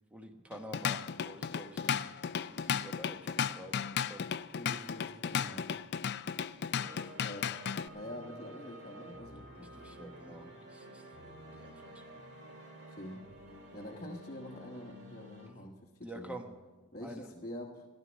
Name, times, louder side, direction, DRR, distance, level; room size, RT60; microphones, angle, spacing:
voice 1, 0.1-4.3 6.9-7.3 9.5-12.0 16.0-16.5 17.0-17.3, right 1 dB, 5° right, 4 dB, 1.2 m, -49 dB
Drum kit / Drum, 0.5-7.9, left 7 dB, 50° left, 0.4 m, -35 dB
voice 2, 4.6-5.7 7.2-7.5 7.9-10.5 12.9-13.2 13.7-16.4 16.9-17.9, left 1 dB, 30° left, -2 dB, 1.2 m, -46 dB
sound 1, 6.7-15.5, right 1 dB, 50° right, 2.1 m, -51 dB
15.0 x 11.5 x 6.2 m, 1.2 s
head